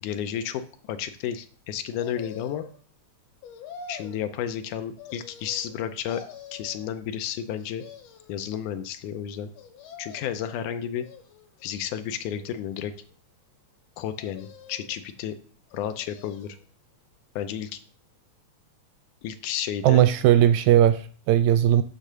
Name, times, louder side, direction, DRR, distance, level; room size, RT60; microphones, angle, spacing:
voice 1, 0.0-2.6 3.9-6.2 6.5-7.8 8.3-9.5 10.0-11.1 11.6-12.9 14.0-15.4 15.7-16.6 17.4-17.8 19.2-20.0, left 9 dB, 80° left, 9 dB, 2.2 m, -32 dB
sound 1, 2.0-2.8 3.4-4.2 5.0-5.8 6.1-6.9 7.5-8.4 9.5-10.5 11.0-11.7 12.3-13.1 14.1-15.0 15.7-16.6 17.0-17.1, left 6 dB, 65° left, 1.9 m, -46 dB
voice 2, 19.8-21.8, right 11 dB, 80° right, 11 dB, 1.8 m, -18 dB
8.3 x 3.6 x 6.7 m, 0.42 s
omnidirectional pair, 3.6 m